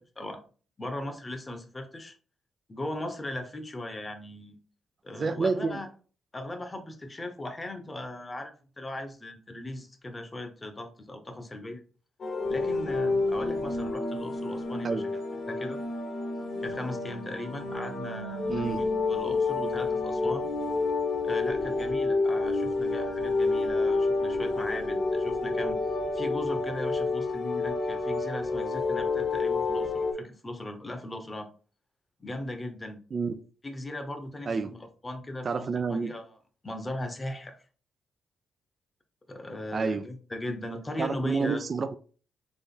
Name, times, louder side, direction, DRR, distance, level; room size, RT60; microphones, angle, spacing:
voice 1, 0.8-2.1 2.7-4.6 5.0-5.9 6.3-11.8 12.5-15.0 15.5-15.8 16.6-20.5 21.2-25.8 26.1-31.5 32.2-33.0 33.6-34.8 35.0-36.3 36.6-37.6 39.3-41.6, left 1 dB, 25° left, 1.0 m, -38 dB
voice 2, 5.1-5.8 14.8-15.1 18.5-18.8 33.1-33.4 34.5-34.7 35.4-36.2 39.7-40.1 41.0-41.9, right 4 dB, 45° right, 0.4 m, -29 dB
sound 1, 12.2-30.1, left 3 dB, 55° left, 1.5 m, -29 dB
4.1 x 3.4 x 3.7 m
supercardioid pair, 65°, 0 cm